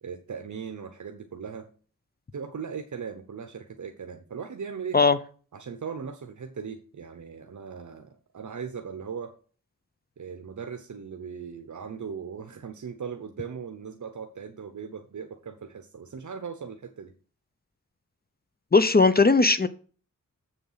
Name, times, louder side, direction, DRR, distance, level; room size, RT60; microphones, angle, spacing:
voice 1, 0.0-1.7 2.3-5.0 5.5-9.3 10.2-17.1, right 6 dB, 70° right, 1.0 m, -38 dB
voice 2, 18.7-19.7, left 4 dB, 30° left, 0.7 m, -18 dB
7.7 x 6.9 x 5.7 m
wide cardioid pair, 85°, 32 cm